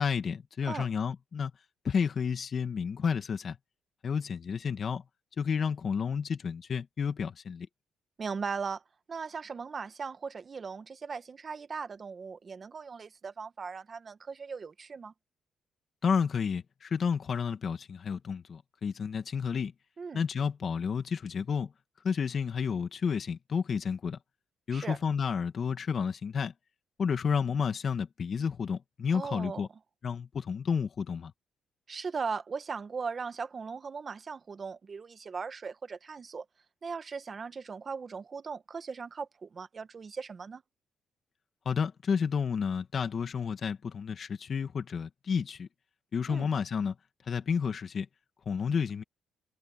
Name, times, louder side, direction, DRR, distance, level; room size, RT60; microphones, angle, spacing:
voice 1, 0.0-1.5 1.8-3.6 4.0-5.0 5.4-7.7 16.0-19.7 20.1-21.7 22.0-24.2 24.7-26.5 27.0-29.7 30.0-31.3 41.7-45.7 46.1-47.0 47.3-48.1 48.5-49.0, left 6 dB, 50° left, 1.7 m, -31 dB
voice 2, 8.2-8.8 9.1-15.1 20.0-20.2 24.7-25.0 29.1-29.7 31.9-36.4 36.8-40.6 46.3-46.5, right 5 dB, 40° right, 1.3 m, -38 dB
open air
cardioid pair, 90°, 0 cm